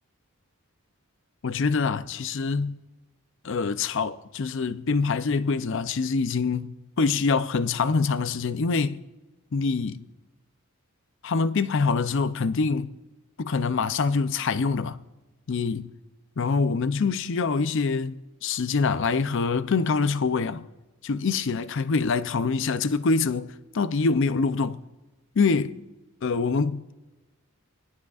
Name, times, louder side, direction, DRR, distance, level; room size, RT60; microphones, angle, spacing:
voice 1, 1.4-2.8 3.4-9.0 9.5-10.0 11.2-12.9 13.4-15.0 15.5-15.9 16.4-20.7 21.0-24.8 25.4-25.8 26.2-26.9, left 4 dB, 60° left, 0.5 m, -25 dB
21.0 x 12.0 x 2.4 m
head